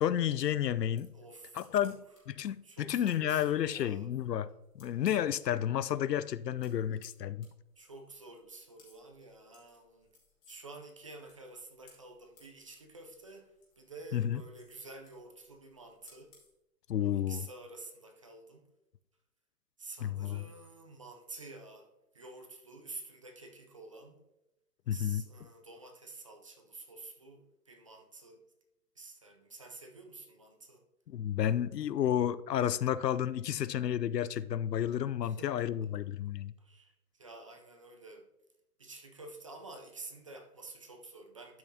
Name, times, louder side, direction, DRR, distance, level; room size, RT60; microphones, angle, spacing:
voice 1, 0.0-1.1 1.6-2.0 2.4-4.5 4.7-7.5 14.1-14.4 16.9-17.4 20.0-20.5 24.9-25.2 31.1-36.5, left 10 dB, 85° left, 0.6 m, -31 dB
sound 1, 0.7-5.5 5.9-16.5, left 4 dB, 30° left, 3.1 m, -65 dB
voice 2, 1.1-1.9 2.6-4.1 7.8-10.1 10.5-16.3 17.0-18.6 19.8-21.9 22.1-24.2 24.9-28.4 29.0-30.8 35.2-35.7 36.6-38.3 38.8-41.6, right 2 dB, 20° right, 0.4 m, -50 dB
12.5 x 5.9 x 2.8 m
hypercardioid pair, 140°, 48 cm